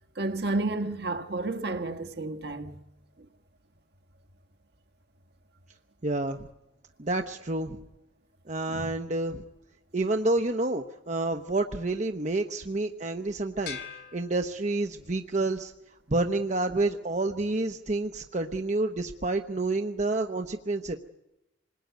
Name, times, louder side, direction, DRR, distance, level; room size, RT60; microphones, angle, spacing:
voice 1, 0.1-2.8 3.2-3.3 8.7-9.0, right 2 dB, 60° right, 1.6 m, -31 dB
voice 2, 6.0-6.4 7.0-7.8 8.5-9.4 9.9-13.8 14.1-15.7 16.1-21.0, right 2 dB, 40° right, 0.9 m, -29 dB
sound 1, 13.6-15.1, left 7 dB, 60° left, 3.0 m, -43 dB
27.0 x 20.5 x 9.2 m
head